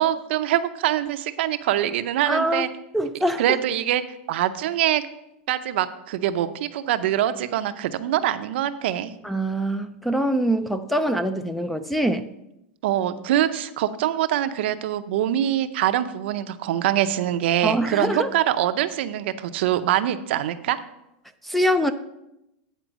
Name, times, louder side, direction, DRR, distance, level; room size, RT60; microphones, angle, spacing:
voice 1, 0.0-2.7 3.4-4.0 4.3-5.0 5.5-9.1 12.8-20.8, right 12 dB, 65° right, 11 dB, 0.6 m, -24 dB
voice 2, 2.3-2.7 2.9-3.6 9.2-12.3 17.6-18.3 21.4-21.9, equal, ahead, 11 dB, 0.4 m, -24 dB
9.2 x 4.4 x 6.1 m, 0.87 s
supercardioid pair, 135°, 6 cm